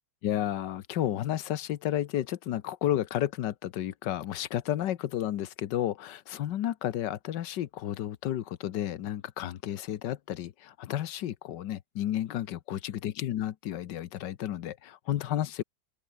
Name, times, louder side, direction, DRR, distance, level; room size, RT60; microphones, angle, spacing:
voice 1, 0.2-15.6, left 12 dB, 65° left, 1.4 m, -32 dB
open air
omnidirectional pair, 2.2 m